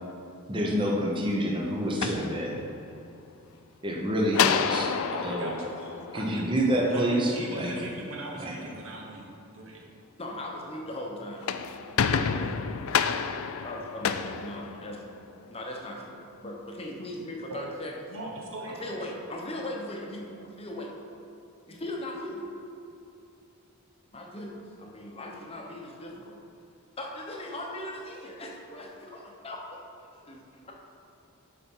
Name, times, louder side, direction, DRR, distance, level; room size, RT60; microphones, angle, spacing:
voice 1, 0.5-2.6 3.8-4.9 5.2-5.5 6.1-7.7 8.4-8.5, equal, 20° right, -1 dB, 0.9 m, -27 dB
sound 1, 1.8-3.0 4.3-6.8 11.2-15.3, left 7 dB, 65° left, 0.4 m, -29 dB
voice 2, 5.1-5.5 5.8-6.4 6.9-9.3 9.5-9.8 17.5-17.6 18.1-19.1, right 1 dB, 65° right, -2 dB, 1.5 m, -39 dB
voice 3, 10.2-11.9 12.2-12.8 13.6-15.0 15.5-17.9 18.8-20.9 21.7-22.5 24.1-24.5 24.8-26.4 27.0-30.7, left 1 dB, 25° left, -1 dB, 1.0 m, -39 dB
11.5 x 4.4 x 5.5 m, 2.7 s
head